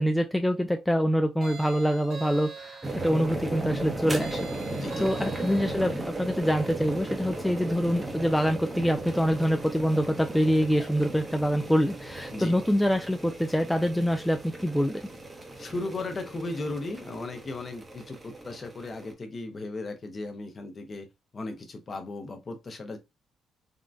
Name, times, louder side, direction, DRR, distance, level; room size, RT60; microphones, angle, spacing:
voice 1, 0.0-4.5 5.0-15.0, equal, 5° left, 0.3 m, -25 dB
sound 1, 1.4-3.2 4.2-6.0, right 4 dB, 55° right, 1.3 m, -43 dB
sound 2, 2.8-19.1, right 2 dB, 20° right, 0.7 m, -36 dB
voice 2, 4.7-5.3 12.3-12.6 15.6-21.1 21.3-23.0, left 2 dB, 40° left, 0.7 m, -36 dB
3.6 x 2.2 x 2.5 m
cardioid pair, 90°, 0 cm